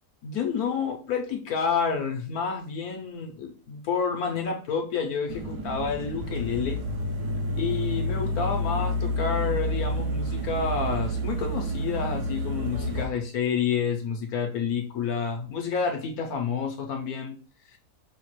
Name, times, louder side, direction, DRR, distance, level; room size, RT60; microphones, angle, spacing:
voice 1, 0.2-6.8 7.6-17.3 17.7-17.8, left 6 dB, 65° left, 2 dB, 1.2 m, -29 dB
sound 1, 5.3-13.1, equal, 75° right, 1.3 m, -29 dB
5.7 x 2.4 x 3.0 m, 0.38 s
omnidirectional pair, 1.8 m